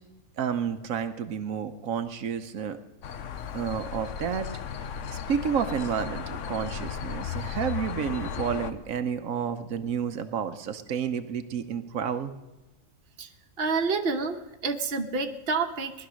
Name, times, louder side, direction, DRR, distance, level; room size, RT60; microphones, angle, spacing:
voice 1, 0.4-2.8 3.5-4.5 5.1-12.3, right 7 dB, 85° right, 8 dB, 1.2 m, -30 dB
sound 1, 3.0-8.7, left 7 dB, 70° left, 1.1 m, -35 dB
voice 2, 13.6-14.4 14.6-15.9, right 4 dB, 50° right, 5 dB, 1.2 m, -28 dB
19.0 x 11.5 x 6.3 m, 1.0 s
omnidirectional pair, 1.4 m